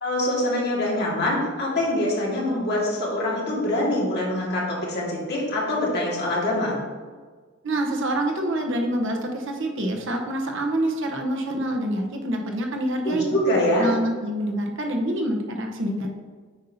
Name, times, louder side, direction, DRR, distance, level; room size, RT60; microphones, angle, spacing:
voice 1, 0.0-6.8 13.1-13.9, left 1 dB, 55° left, -4 dB, 2.0 m, -24 dB
voice 2, 7.6-13.3 13.8-16.1, right 1 dB, 65° right, 2 dB, 1.0 m, -26 dB
8.2 x 5.3 x 2.7 m, 1.5 s
head